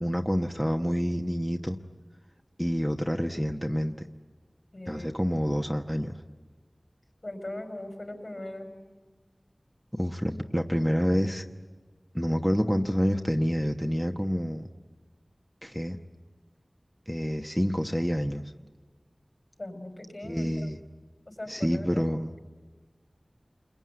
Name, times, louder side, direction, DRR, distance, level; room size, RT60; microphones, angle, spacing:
voice 1, 0.0-1.8 2.6-4.0 4.9-6.1 9.9-11.4 12.1-14.7 15.6-16.0 17.1-18.5 20.2-20.8 21.5-22.3, equal, ahead, 4 dB, 1.1 m, -28 dB
voice 2, 4.7-5.4 7.2-8.7 19.6-20.7 21.3-22.0, left 1 dB, 55° left, 4 dB, 5.9 m, -40 dB
28.5 x 21.5 x 9.7 m, 1.4 s
wide cardioid pair, 45°, 0 cm